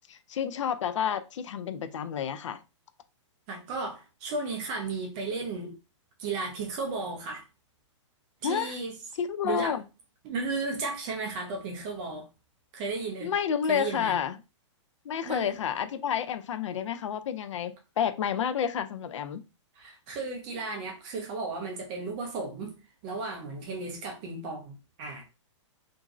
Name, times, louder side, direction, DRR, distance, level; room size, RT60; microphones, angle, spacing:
voice 1, 0.1-2.6 8.4-8.7 9.2-9.8 13.2-14.4 15.1-19.4, left 8 dB, 70° left, 0.4 m, -30 dB
voice 2, 3.5-5.7 6.2-7.4 8.4-9.0 9.4-9.8 10.2-12.3 12.7-13.3 13.7-14.2 15.2-15.5 19.8-22.8 23.0-25.2, right 3 dB, 15° right, 0.4 m, -34 dB
2.9 x 2.6 x 2.4 m
hypercardioid pair, 175°, 16 cm